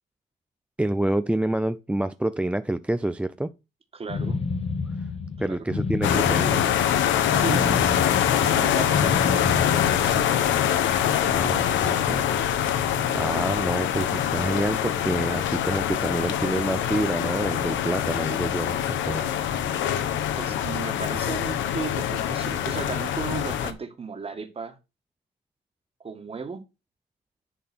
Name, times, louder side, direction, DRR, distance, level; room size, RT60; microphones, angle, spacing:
voice 1, 0.8-3.5 5.4-6.7 11.2-12.3 13.1-19.2, right 1 dB, 5° right, 0.4 m, -27 dB
voice 2, 3.9-4.4 5.4-5.6 7.3-7.8 8.3-10.3 20.1-24.8 26.0-26.6, right 5 dB, 30° right, 1.9 m, -35 dB
sound 1, 4.1-10.4, left 4 dB, 30° left, 0.9 m, -30 dB
sound 2, 6.0-23.7, left 10 dB, 75° left, 1.2 m, -24 dB
10.5 x 3.8 x 6.1 m
cardioid pair, 100°, 20 cm